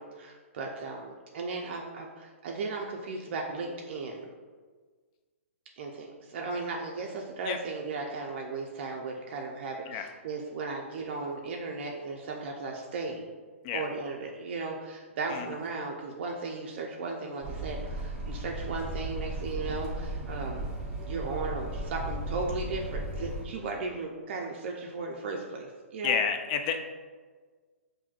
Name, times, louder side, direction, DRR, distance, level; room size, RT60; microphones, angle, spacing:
voice 1, 0.0-4.3 5.8-13.3 13.7-20.7 21.0-26.2, right 3 dB, 50° right, 0 dB, 0.4 m, -36 dB
sound 1, 17.4-23.4, right 1 dB, 10° right, 0.6 m, -36 dB
voice 2, 26.0-26.8, left 7 dB, 35° left, 6 dB, 0.3 m, -29 dB
5.6 x 2.6 x 2.3 m, 1.5 s
hypercardioid pair, 145°, 8 cm